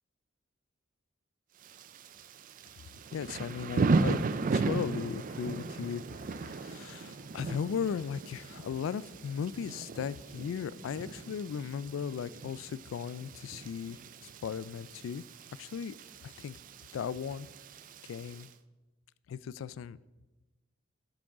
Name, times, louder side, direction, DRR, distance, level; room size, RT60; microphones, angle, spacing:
Thunder / Rain, 1.6-18.5, right 3 dB, 45° right, 0.4 m, -36 dB
voice 1, 3.1-4.2 4.5-14.0 14.4-15.2 15.6-15.9 16.2-16.6 16.9-17.5 18.1-18.5 19.3-20.0, left 7 dB, 85° left, 19 dB, 0.3 m, -37 dB
11.5 x 6.2 x 3.7 m, 1.1 s
head